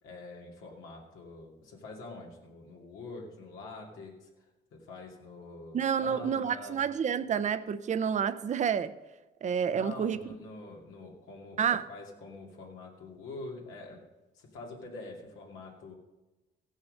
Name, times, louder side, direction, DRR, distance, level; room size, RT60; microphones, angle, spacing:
voice 1, 0.0-6.8 9.7-11.6 11.9-14.0 14.3-15.9, left 3 dB, 90° left, 2.4 m, -45 dB
voice 2, 5.7-8.9 9.4-10.2 11.6-11.8, right 7 dB, 35° right, 0.5 m, -29 dB
15.0 x 6.4 x 6.4 m
cardioid pair, 90°, 20 cm